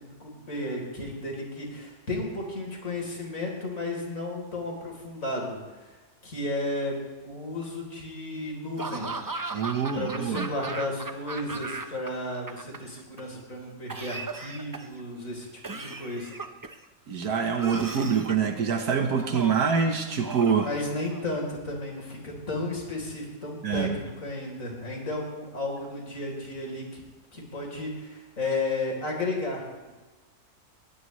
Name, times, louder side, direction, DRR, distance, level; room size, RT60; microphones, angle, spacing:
voice 1, 0.0-6.0 6.2-7.0 7.2-9.1 9.9-16.3 20.6-27.0 27.3-29.9, left 2 dB, 55° left, 0 dB, 4.2 m, -33 dB
Laughter / Cough, 8.8-12.1 12.3-13.2 13.9-15.0 15.6-16.8 17.6-18.5 19.2-19.7 20.2-21.4, right 3 dB, 20° right, 0.5 m, -37 dB
voice 2, 9.5-10.5 17.1-20.7 23.6-24.0, right 6 dB, 80° right, 5 dB, 1.7 m, -25 dB
22.0 x 16.5 x 3.2 m, 1.2 s
omnidirectional pair, 1.6 m